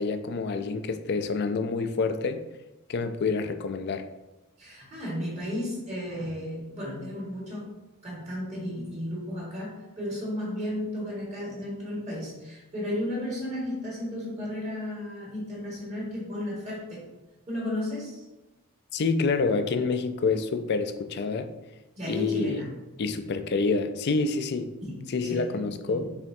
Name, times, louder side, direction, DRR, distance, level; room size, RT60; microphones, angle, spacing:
voice 1, 0.0-2.4 2.9-4.0 18.9-21.5 22.1-22.6 23.0-24.7 25.1-26.1, left 4 dB, 50° left, 9 dB, 0.4 m, -27 dB
voice 2, 4.6-7.7 8.0-17.1 17.5-18.2 22.0-22.7 24.8-26.1, left 1 dB, 30° right, -5 dB, 1.6 m, -34 dB
5.8 x 3.4 x 2.6 m, 1.0 s
head